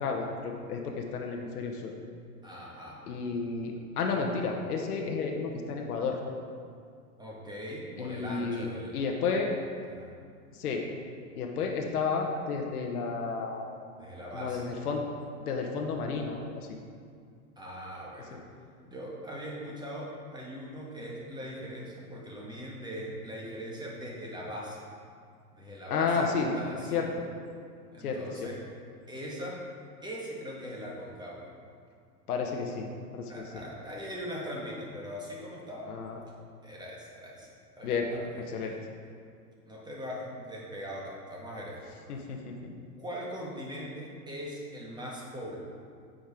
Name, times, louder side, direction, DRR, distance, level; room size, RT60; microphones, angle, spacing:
voice 1, 0.0-1.9 3.1-6.2 8.0-8.7 8.9-9.5 10.5-10.8 11.4-13.8 14.3-15.0 15.4-16.7 18.3-18.4 25.9-26.5 26.9-27.1 28.0-28.5 32.3-32.9 33.1-33.6 35.9-36.2 37.8-38.1 38.5-38.7 42.1-42.5, left 5 dB, 70° left, 2 dB, 1.2 m, -32 dB
voice 2, 2.4-3.0 7.2-9.0 9.9-10.2 14.0-14.7 17.6-18.4 18.8-24.8 25.5-27.0 27.9-28.6 29.1-29.6 30.0-31.5 33.3-35.9 36.6-37.5 37.8-38.3 39.2-39.3 39.7-42.0 43.0-45.6, equal, 10° right, -3 dB, 1.8 m, -40 dB
8.9 x 5.3 x 4.8 m, 2.2 s
hypercardioid pair, 100°, 47 cm